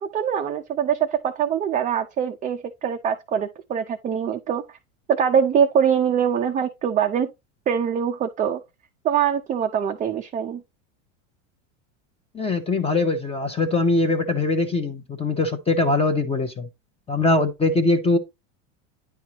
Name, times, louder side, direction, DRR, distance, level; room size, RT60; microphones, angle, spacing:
voice 1, 0.0-4.6 5.1-7.3 7.7-8.6 9.0-10.6, right 8 dB, 20° right, 0.5 m, -23 dB
voice 2, 12.3-16.7 17.1-18.2, left 2 dB, 15° left, 0.8 m, -22 dB
9.8 x 4.5 x 2.9 m
supercardioid pair, 130°, 40 cm